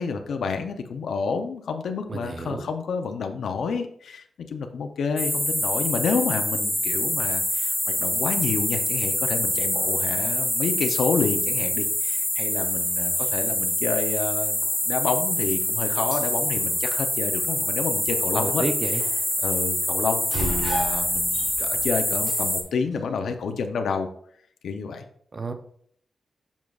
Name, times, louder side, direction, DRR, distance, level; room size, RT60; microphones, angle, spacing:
voice 1, 0.0-14.6 14.8-18.6 19.4-24.1 24.6-25.0, left 5 dB, 80° left, 6 dB, 0.6 m, -29 dB
voice 2, 2.1-2.7 18.3-19.0 25.3-25.5, right 3 dB, 30° right, 7 dB, 0.6 m, -30 dB
sound 1, 5.2-22.6, equal, ahead, 0.8 m, -25 dB
sound 2, 7.2-23.4, right 2 dB, 60° right, 1.4 m, -41 dB
7.2 x 6.1 x 2.4 m, 0.63 s
wide cardioid pair, 165°, 0 cm